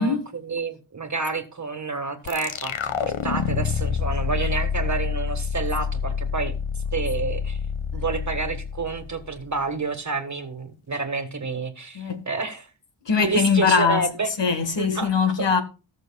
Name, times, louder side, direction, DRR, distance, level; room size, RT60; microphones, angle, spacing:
voice 1, 0.0-6.5 6.9-7.6 7.9-12.7 13.2-14.3 14.8-15.1, right 4 dB, 35° right, 1.5 m, -29 dB
sound 1, 2.2-9.5, left 7 dB, 85° left, 0.8 m, -27 dB
voice 2, 13.0-14.1 14.4-15.6, left 5 dB, 65° left, 1.5 m, -21 dB
18.5 x 6.4 x 2.3 m
wide cardioid pair, 80°, 47 cm